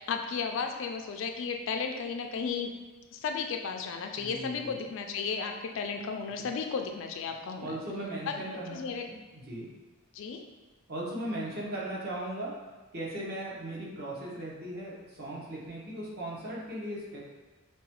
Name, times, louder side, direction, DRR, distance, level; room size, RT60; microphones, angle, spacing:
voice 1, 0.0-2.7 3.1-7.8 8.3-9.1 10.1-10.5, left 5 dB, 60° left, 4 dB, 0.3 m, -34 dB
voice 2, 4.2-4.8 6.4-6.5 7.6-9.7 10.9-12.5 12.9-17.2, right 1 dB, 45° right, -5 dB, 0.8 m, -38 dB
4.7 x 2.2 x 2.9 m, 1.2 s
head